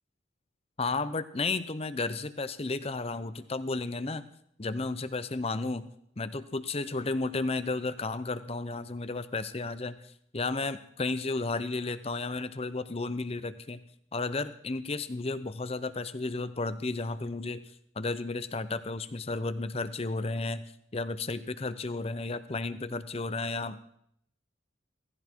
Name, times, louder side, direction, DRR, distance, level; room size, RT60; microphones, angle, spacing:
voice 1, 0.8-4.3 4.6-5.9 6.2-13.8 14.1-17.6 18.0-20.6 20.9-24.0, left 3 dB, 30° left, 13 dB, 0.7 m, -33 dB
16.5 x 15.5 x 4.5 m, 0.70 s
head